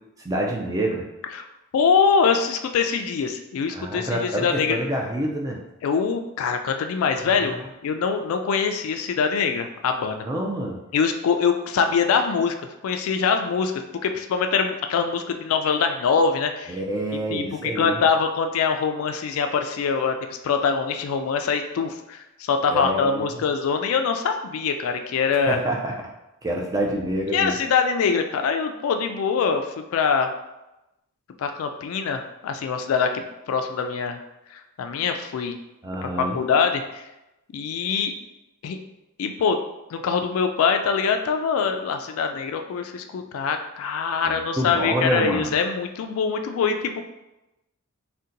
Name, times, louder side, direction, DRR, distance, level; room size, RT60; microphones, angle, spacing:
voice 1, 0.2-1.1 3.7-5.6 7.2-7.4 10.2-10.8 16.7-18.0 22.7-23.3 25.5-25.9 26.4-27.6 35.8-36.4 44.2-45.5, right 1 dB, 15° right, 0 dB, 0.3 m, -27 dB
voice 2, 1.7-4.8 5.8-7.5 7.8-10.2 10.9-12.5 12.8-13.7 14.0-16.8 17.1-25.6 27.3-30.3 31.4-34.2 34.5-35.6 36.0-37.0 37.5-38.1 38.6-38.8 39.2-39.6 39.9-47.0, left 5 dB, 65° left, 6 dB, 0.3 m, -23 dB
2.7 x 2.2 x 3.7 m, 0.95 s
head